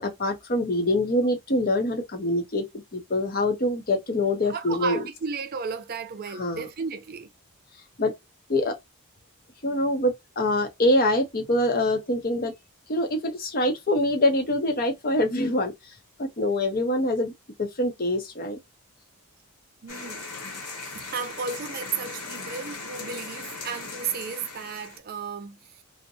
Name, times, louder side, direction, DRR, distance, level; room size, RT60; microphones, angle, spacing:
voice 1, 0.0-2.6 2.9-5.0 6.4-6.6 8.0-8.1 8.5-8.8 9.6-12.5 12.9-15.7 16.2-17.3 17.6-18.6, left 1 dB, 40° left, 0.7 m, -24 dB
voice 2, 4.5-7.3 19.8-20.2 20.9-25.6, right 5 dB, 40° right, 0.4 m, -33 dB
sound 1, 19.9-25.0, left 3 dB, 90° left, 1.2 m, -38 dB
2.6 x 2.1 x 2.7 m
head